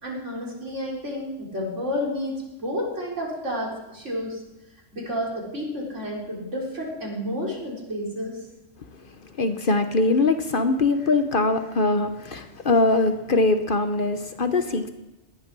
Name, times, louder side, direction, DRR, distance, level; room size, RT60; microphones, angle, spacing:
voice 1, 0.0-4.4 4.9-8.4, left 1 dB, 75° right, -3 dB, 4.3 m, -30 dB
voice 2, 9.4-14.9, left 3 dB, 45° left, 8 dB, 1.1 m, -22 dB
18.5 x 12.0 x 6.1 m, 1.0 s
omnidirectional pair, 1.3 m